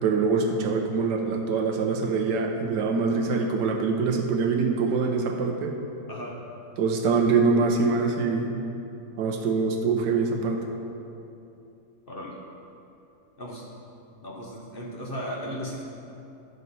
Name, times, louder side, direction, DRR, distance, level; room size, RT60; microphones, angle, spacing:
voice 1, 0.0-5.7 6.8-8.6 9.2-10.6, right 4 dB, 85° right, 3 dB, 1.5 m, -24 dB
voice 2, 14.2-15.8, equal, 40° left, -3 dB, 0.9 m, -36 dB
10.5 x 6.7 x 4.1 m, 2.8 s
omnidirectional pair, 1.8 m